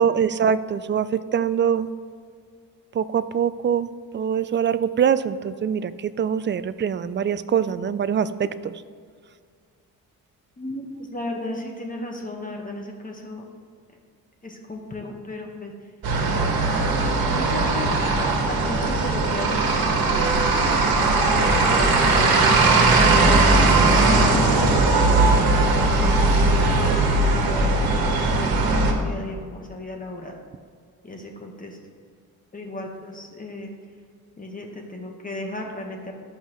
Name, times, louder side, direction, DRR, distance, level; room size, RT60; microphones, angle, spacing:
voice 1, 0.0-1.9 2.9-8.7 23.5-24.6, right 8 dB, 30° right, 14 dB, 0.4 m, -24 dB
voice 2, 10.6-10.9 11.1-13.4 14.4-15.7 17.3-17.9 18.4-20.3 20.6-23.2 23.9-30.4 31.0-31.8 32.5-33.7 34.4-36.1, left 1 dB, 20° left, 1 dB, 1.4 m, -35 dB
sound 1, 16.0-28.9, right 2 dB, 70° right, 1.6 m, -19 dB
14.0 x 5.6 x 3.1 m, 2.1 s
cardioid pair, 90°, 37 cm